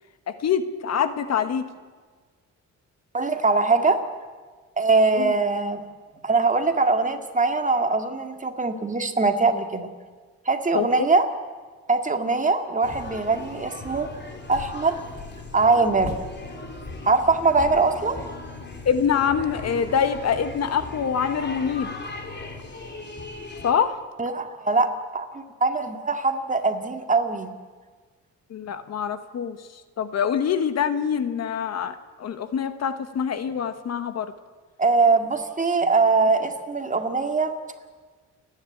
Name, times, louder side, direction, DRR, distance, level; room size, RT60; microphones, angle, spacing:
voice 1, 0.3-1.6 5.1-5.3 10.7-11.1 18.8-21.9 23.6-24.0 28.5-34.3, left 7 dB, 60° left, 11 dB, 1.4 m, -25 dB
voice 2, 3.1-4.0 4.8-5.8 6.2-9.9 10.5-11.3 11.9-14.1 14.5-15.0 15.5-16.1 17.1-18.2 24.2-27.5 34.8-37.5, right 3 dB, 25° right, 6 dB, 2.1 m, -22 dB
sound 1, 12.8-23.7, left 3 dB, 35° left, 3.7 m, -37 dB
29.0 x 10.5 x 8.6 m, 1.5 s
cardioid pair, 90°, 30 cm